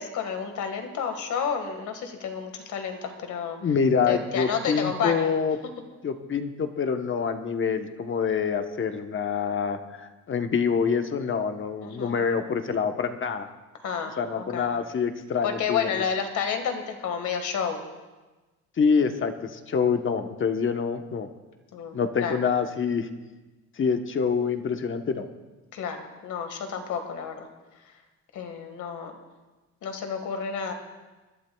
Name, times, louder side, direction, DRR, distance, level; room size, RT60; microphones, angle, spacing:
voice 1, 0.0-3.6 4.1-5.3 11.8-12.1 13.8-14.7 15.4-17.8 21.7-22.4 25.7-27.5 28.3-29.1 29.8-30.7, left 7 dB, 75° left, 5 dB, 1.7 m, -30 dB
voice 2, 3.6-5.6 6.0-13.5 14.2-16.0 18.8-21.3 21.9-23.1 23.8-25.3, left 6 dB, 40° left, 7 dB, 1.0 m, -26 dB
24.5 x 12.0 x 2.3 m, 1.2 s
cardioid pair, 90°, 30 cm